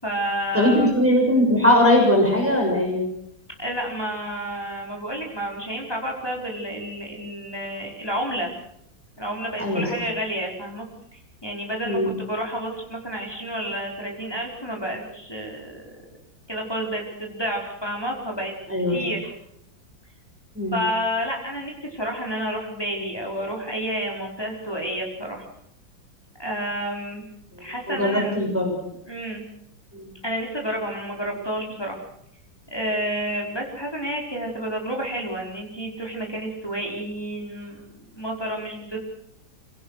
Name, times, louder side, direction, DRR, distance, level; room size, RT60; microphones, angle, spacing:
voice 1, 0.0-0.9 3.6-8.5 9.2-10.9 11.1-15.9 16.5-18.5 18.9-19.3 20.7-25.4 26.4-27.3 27.6-28.5 29.1-29.4 30.2-32.0 32.7-39.0, equal, 10° left, 0 dB, 4.9 m, -30 dB
voice 2, 0.5-3.0 9.6-9.9 11.8-12.1 18.7-19.0 20.5-20.8 27.5-28.7 29.9-30.1, left 1 dB, 5° right, 0 dB, 6.6 m, -20 dB
26.0 x 18.0 x 6.5 m, 0.77 s
omnidirectional pair, 2.1 m